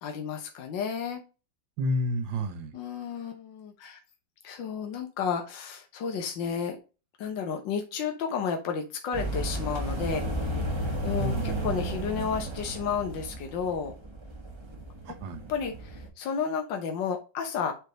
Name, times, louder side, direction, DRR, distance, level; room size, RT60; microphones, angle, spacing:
voice 1, 0.0-1.2 2.7-4.0 4.4-6.8 7.2-10.5 11.0-13.9 15.1-15.2 15.5-17.7, left 6 dB, 80° left, 1.7 m, -32 dB
voice 2, 1.8-2.8 11.2-12.3 15.1-15.5, equal, 80° right, 1.7 m, -31 dB
sound 1, 9.1-16.1, right 1 dB, 15° right, 1.3 m, -33 dB
8.0 x 3.5 x 4.0 m
omnidirectional pair, 2.0 m